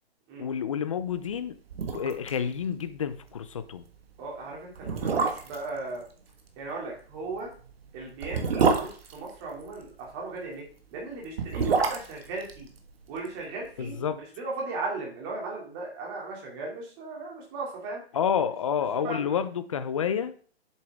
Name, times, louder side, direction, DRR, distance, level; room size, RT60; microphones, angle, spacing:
voice 1, 0.4-1.6 1.9-3.8 13.8-14.2 18.1-20.3, left 7 dB, 30° left, 11 dB, 0.5 m, -29 dB
sound 1, 1.3-1.4 1.7-2.4 2.6-2.7 3.1-3.3 4.0-4.1 4.8-5.7 7.2-9.9 11.1-13.4 13.6-13.7, right 5 dB, 65° right, 1.6 m, -27 dB
voice 2, 4.2-6.0 6.6-7.5 7.9-12.7 13.1-18.0 19.0-19.3, right 3 dB, 20° right, -2 dB, 2.5 m, -37 dB
8.0 x 7.3 x 3.5 m, 0.43 s
hypercardioid pair, 170°, 33 cm